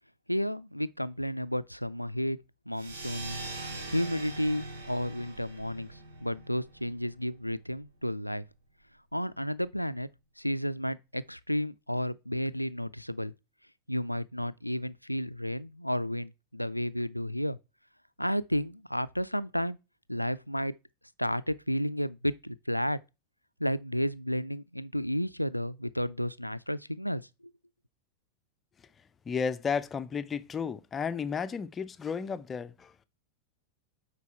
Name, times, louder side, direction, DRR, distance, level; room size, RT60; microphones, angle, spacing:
voice 1, 0.3-2.4 2.7-3.4 3.9-8.4 9.1-10.1 10.4-13.3 13.9-17.6 18.2-19.8 20.1-20.7 21.2-23.0 23.6-27.2, equal, 90° left, 0.3 m, -32 dB
sound 1, 2.7-7.8, right 2 dB, 65° right, 2.8 m, -42 dB
voice 2, 29.3-32.9, left 6 dB, 20° left, 0.5 m, -33 dB
8.3 x 4.6 x 4.3 m
figure-of-eight pair, 90°, 0 cm